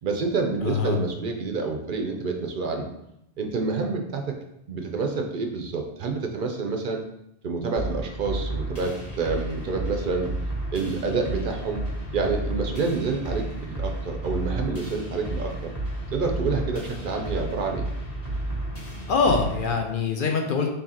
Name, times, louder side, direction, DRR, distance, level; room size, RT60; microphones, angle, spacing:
voice 1, 0.0-2.9 3.4-4.4 4.7-7.0 7.4-10.3 10.7-11.8 12.1-15.7 16.1-17.9, right 4 dB, 60° right, 3 dB, 0.6 m, -28 dB
voice 2, 0.6-1.0 19.1-20.7, left 5 dB, 60° left, 3 dB, 0.7 m, -23 dB
sound 1, 7.8-19.8, right 1 dB, 30° left, 1.5 m, -32 dB
4.6 x 3.1 x 2.8 m, 0.81 s
omnidirectional pair, 1.1 m